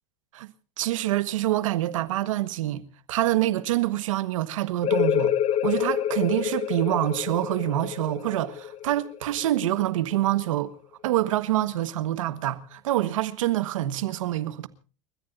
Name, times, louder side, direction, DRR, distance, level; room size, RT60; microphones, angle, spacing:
voice 1, 0.8-2.8 3.1-5.3 5.6-10.7 11.0-14.7, right 14 dB, 85° right, 1.5 m, -26 dB
sound 1, 4.8-10.2, left 10 dB, 40° left, 1.9 m, -27 dB
29.5 x 14.5 x 2.7 m
hypercardioid pair, 100°, 16 cm